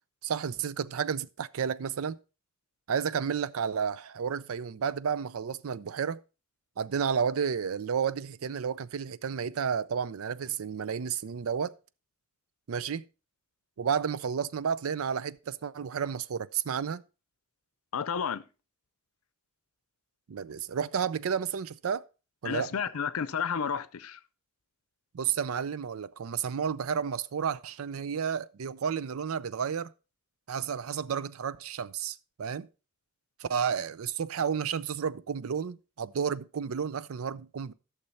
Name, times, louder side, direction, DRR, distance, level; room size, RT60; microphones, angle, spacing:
voice 1, 0.2-2.2 2.9-6.2 6.8-11.7 12.7-13.0 13.8-17.0 20.3-22.0 22.4-22.7 25.1-29.9 30.5-32.7 33.4-37.7, right 7 dB, 80° right, 0.5 m, -31 dB
voice 2, 17.9-18.4 22.4-24.2, left 6 dB, 90° left, 0.6 m, -31 dB
12.0 x 6.7 x 4.2 m
head